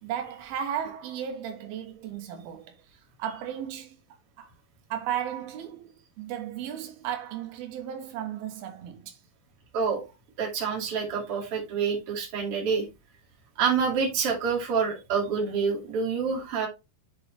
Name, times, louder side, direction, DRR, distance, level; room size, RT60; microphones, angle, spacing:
voice 1, 0.0-4.0 4.4-4.5 4.9-9.2, right 9 dB, 85° right, 3.0 m, -35 dB
voice 2, 10.4-12.9 13.6-16.7, right 5 dB, 45° right, 2.7 m, -27 dB
8.6 x 4.8 x 3.1 m
omnidirectional pair, 4.3 m